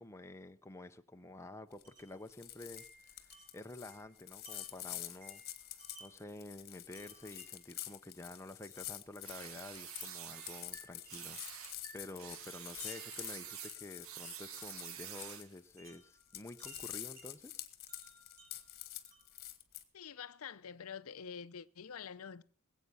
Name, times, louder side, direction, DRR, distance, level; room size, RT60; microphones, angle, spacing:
voice 1, 0.0-5.4 6.0-17.6, left 2 dB, 15° left, 0.7 m, -50 dB
sound 1, 1.7-2.0 2.3-19.8, left 13 dB, 45° left, 1.5 m, -48 dB
Wind chime, 1.8-2.2 2.8-6.3 6.9-7.8 8.7-8.9 10.0-14.9 15.8-17.3 17.9-19.4, right 3 dB, 45° right, 4.5 m, -59 dB
sound 2, 9.2-10.7 11.1-11.8 12.2-15.5, right 9 dB, 70° right, 1.2 m, -48 dB
voice 2, 19.9-22.4, left 7 dB, 80° left, 0.6 m, -47 dB
20.5 x 8.3 x 5.5 m
head